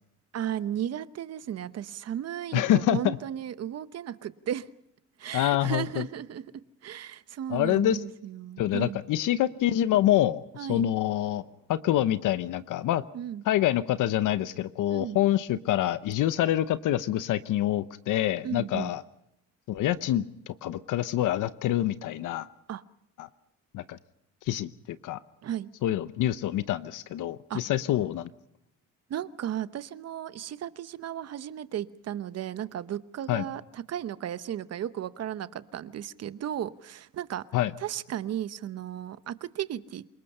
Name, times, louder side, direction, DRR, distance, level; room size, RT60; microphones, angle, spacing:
voice 1, 0.3-4.7 5.2-6.4 6.8-9.0 10.6-10.8 13.1-13.4 14.9-15.2 18.4-18.9 22.7-22.8 25.4-25.7 27.5-27.6 29.1-37.4 37.8-40.1, right 10 dB, 50° right, 0.9 m, -35 dB
voice 2, 2.5-3.2 5.3-6.0 7.5-8.0 8.6-11.4 11.7-13.0 13.4-19.0 19.7-22.5 23.2-23.3 23.7-24.0 24.5-25.2 25.8-28.3 33.3-33.4 37.5-37.7, left 13 dB, 70° left, 0.9 m, -26 dB
28.0 x 19.5 x 5.5 m
cardioid pair, 125°, 32 cm